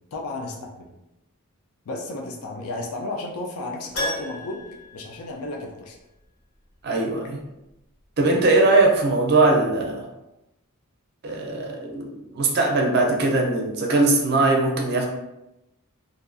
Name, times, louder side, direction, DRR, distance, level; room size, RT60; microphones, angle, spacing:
voice 1, 0.1-0.9 1.9-4.6 4.9-6.0, left 2 dB, 70° left, 0 dB, 0.4 m, -33 dB
Keyboard (musical), 3.9-6.0 6.3-6.4 9.1-9.2 9.4-9.5, left 1 dB, 85° left, 0.9 m, -33 dB
voice 2, 6.8-7.4 8.2-10.1 11.2-15.1, right 2 dB, 50° right, 1 dB, 0.5 m, -20 dB
2.5 x 2.3 x 2.5 m, 0.92 s
head